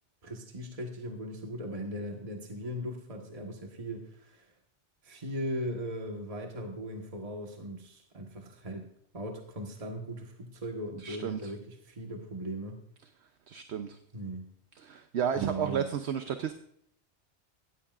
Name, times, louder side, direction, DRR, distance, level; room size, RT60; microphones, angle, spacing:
voice 1, 0.2-4.5 5.0-8.9 9.1-12.8 14.1-14.5 15.3-15.9, equal, 30° right, 2 dB, 1.5 m, -38 dB
voice 2, 11.0-11.4 13.5-14.0 14.8-16.5, right 8 dB, 70° right, 7 dB, 1.0 m, -32 dB
17.0 x 15.5 x 2.5 m, 0.69 s
omnidirectional pair, 1.2 m